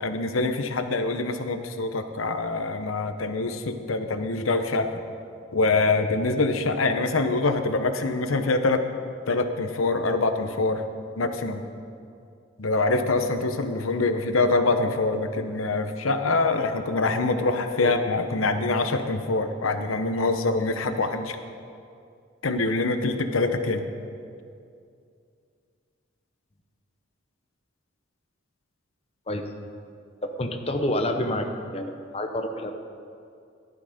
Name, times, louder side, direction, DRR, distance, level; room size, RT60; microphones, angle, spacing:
voice 1, 0.0-5.0 5.5-8.8 9.3-10.8 11.2-11.6 12.6-21.4 22.4-23.8, left 3 dB, 85° left, 8 dB, 0.9 m, -25 dB
voice 2, 30.2-32.7, left 1 dB, 30° left, 4 dB, 0.9 m, -28 dB
15.0 x 12.0 x 5.0 m, 2.4 s
head